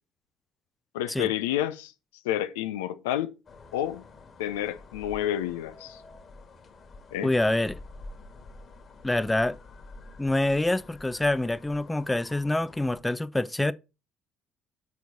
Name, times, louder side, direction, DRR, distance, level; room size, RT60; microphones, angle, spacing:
voice 1, 0.9-1.9 2.2-3.3 3.7-4.0 4.4-6.0 7.1-7.3, left 12 dB, 85° left, 0.5 m, -29 dB
sound 1, 3.5-13.0, left 3 dB, 45° left, 1.8 m, -48 dB
voice 2, 7.2-7.8 9.0-9.6 10.2-13.7, left 2 dB, 10° left, 0.5 m, -26 dB
7.2 x 4.6 x 4.0 m
hypercardioid pair, 60°, 0 cm